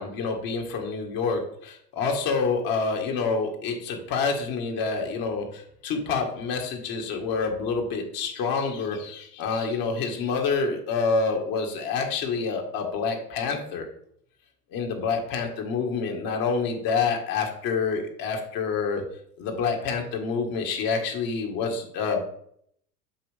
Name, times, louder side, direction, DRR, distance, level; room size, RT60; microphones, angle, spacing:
voice 1, 0.0-13.8 14.7-19.0 19.4-22.2, left 4 dB, 45° left, 3 dB, 1.9 m, -27 dB
7.6 x 5.2 x 3.5 m, 0.67 s
hypercardioid pair, 95°, 49 cm